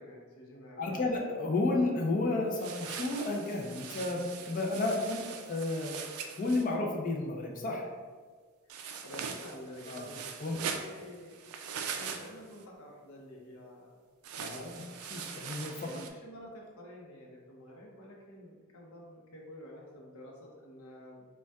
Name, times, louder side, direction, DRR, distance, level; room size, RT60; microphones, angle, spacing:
voice 1, 0.0-1.0 9.0-11.4 11.9-14.0 14.4-14.8 15.8-21.2, left 1 dB, 75° left, -1 dB, 0.8 m, -49 dB
voice 2, 0.8-6.0 6.4-7.9 9.9-10.1 10.4-10.6 14.4-14.8 15.1-15.9, left 2 dB, 40° left, 0 dB, 0.5 m, -32 dB
sound 1, 2.5-6.7 8.7-12.6 14.2-16.1, right 6 dB, 90° right, 0.4 m, -41 dB
5.3 x 2.3 x 2.3 m, 1.5 s
head